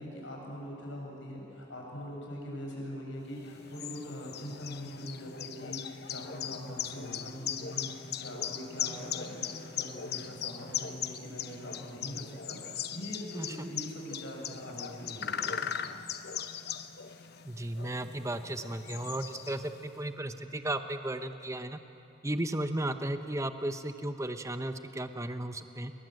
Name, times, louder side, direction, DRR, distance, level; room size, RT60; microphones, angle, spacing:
voice 1, 0.0-15.9, equal, 70° left, -1 dB, 7.3 m, -42 dB
sound 1, 3.4-19.9, left 9 dB, 55° left, 0.9 m, -39 dB
voice 2, 13.4-13.7 17.4-21.8 22.2-25.9, right 1 dB, 15° right, 8 dB, 1.0 m, -35 dB
29.0 x 22.5 x 7.9 m, 3.0 s
head